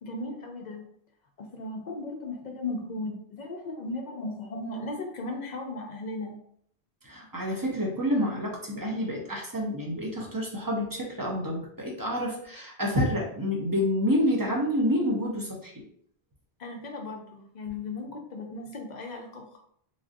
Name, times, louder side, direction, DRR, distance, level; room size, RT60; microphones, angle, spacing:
voice 1, 0.0-0.9 1.4-6.4 16.6-19.6, left 2 dB, 55° left, 3 dB, 0.5 m, -36 dB
voice 2, 7.0-15.8, equal, 30° right, -2 dB, 0.4 m, -28 dB
3.2 x 2.5 x 2.5 m, 0.65 s
omnidirectional pair, 1.1 m